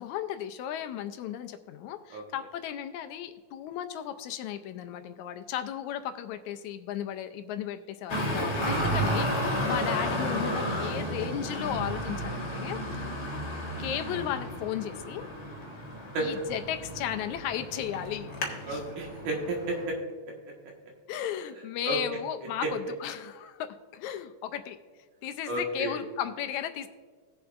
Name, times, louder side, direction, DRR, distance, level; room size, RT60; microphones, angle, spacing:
voice 1, 0.0-13.1 13.8-15.3 16.2-18.3 18.7-18.8 21.1-23.7 23.9-24.8 25.2-26.9, left 10 dB, 80° left, 9 dB, 2.0 m, -35 dB
Traffic noise roadway noise, 8.1-19.9, equal, 45° left, 1.4 m, -32 dB
voice 2, 8.5-8.8 9.2-9.4 16.1-16.3 18.7-19.9 21.9-22.0 22.6-22.7 25.5-26.0, right 2 dB, 85° right, -1 dB, 3.1 m, -32 dB
18.5 x 7.1 x 2.5 m, 1.5 s
omnidirectional pair, 3.4 m